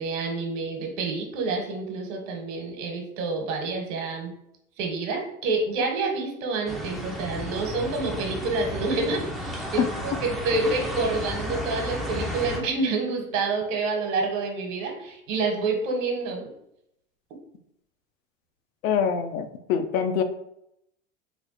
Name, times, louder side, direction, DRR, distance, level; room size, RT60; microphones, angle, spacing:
voice 1, 0.0-4.3 4.8-16.4, right 3 dB, 65° right, 3 dB, 1.2 m, -28 dB
sound 1, 6.7-12.6, left 1 dB, ahead, 0.3 m, -33 dB
voice 2, 18.8-20.2, left 7 dB, 85° left, 7 dB, 0.6 m, -24 dB
3.4 x 2.3 x 3.9 m, 0.79 s
supercardioid pair, 115°, 41 cm